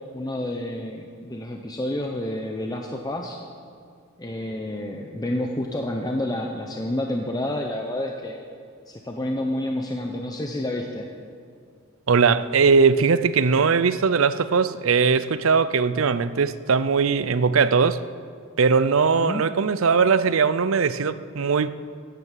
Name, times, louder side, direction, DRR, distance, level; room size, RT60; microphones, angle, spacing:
voice 1, 0.1-3.4 4.2-8.4 8.9-11.1 19.2-19.4, left 1 dB, 20° left, 0.8 m, -29 dB
voice 2, 12.1-18.0 18.6-21.7, right 5 dB, 70° right, 0.6 m, -20 dB
15.5 x 9.6 x 7.5 m
head